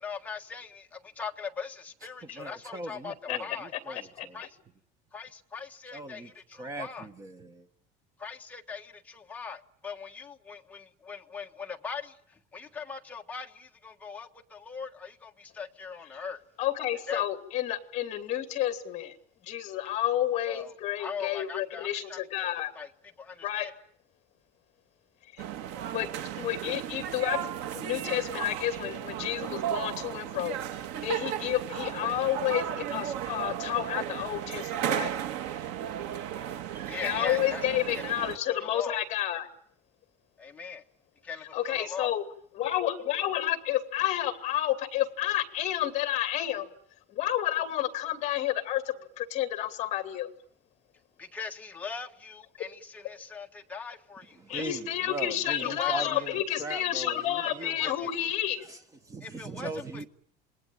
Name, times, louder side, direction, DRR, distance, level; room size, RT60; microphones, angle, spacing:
voice 1, 0.0-4.0 4.3-4.6 5.1-7.1 8.2-16.4 17.1-17.2 20.5-22.5 22.7-22.9 23.2-23.7 36.8-37.7 38.5-39.0 40.4-40.8 41.2-42.1 51.2-54.7 55.6-56.2 57.6-58.1 59.2-60.1, left 5 dB, 10° left, 1.3 m, -40 dB
voice 2, 2.2-4.4 5.9-7.7 54.3-57.9 58.2-58.3 58.6-60.1, right 2 dB, 20° right, 1.4 m, -40 dB
voice 3, 4.2-4.5 16.6-19.2 19.4-22.7 23.4-23.7 25.3-25.4 25.9-26.1 26.4-27.4 27.7-35.1 36.9-39.5 41.5-42.2 42.6-46.7 47.1-50.3 54.5-58.7, left 12 dB, 40° left, 2.5 m, -30 dB
sound 1, 25.4-38.4, right 10 dB, 80° right, 1.9 m, -35 dB
27.5 x 20.0 x 9.0 m
cardioid pair, 180°, 18 cm